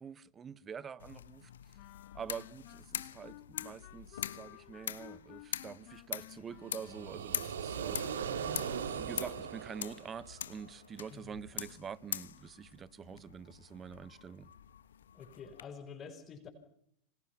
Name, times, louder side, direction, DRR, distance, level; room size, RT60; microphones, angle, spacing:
voice 1, 0.0-1.5 2.1-3.4 3.6-8.4 9.0-14.5, right 7 dB, 20° right, 1.0 m, -46 dB
sound 1, 1.0-15.6, left 9 dB, 65° left, 1.3 m, -44 dB
sound 2, 1.7-7.4, left 17 dB, 45° left, 2.2 m, -54 dB
sound 3, 6.6-10.7, right 7 dB, 65° right, 2.4 m, -39 dB
voice 2, 15.1-16.5, left 6 dB, 25° left, 4.7 m, -48 dB
29.5 x 26.0 x 5.8 m
figure-of-eight pair, 90°, 0 cm